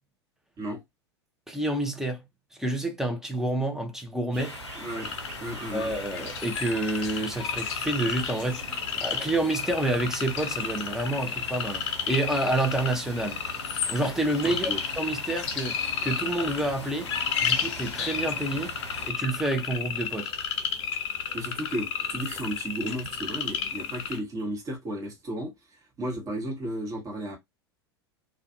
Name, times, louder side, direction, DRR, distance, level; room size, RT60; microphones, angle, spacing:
voice 1, 1.5-2.2 2.6-4.6 5.7-13.4 13.9-17.1 17.4-18.7 19.0-20.3, right 1 dB, 5° right, 0.6 m, -29 dB
sound 1, 4.3-19.1, right 7 dB, 45° right, 0.9 m, -45 dB
sound 2, 4.4-19.1, left 4 dB, 85° left, 0.4 m, -43 dB
voice 2, 4.8-5.1 5.4-5.9 14.4-14.8 21.3-27.4, right 1 dB, 25° right, 1.1 m, -34 dB
sound 3, 5.0-24.2, left 7 dB, 40° left, 0.6 m, -32 dB
2.5 x 2.3 x 2.5 m
figure-of-eight pair, 90°, 14 cm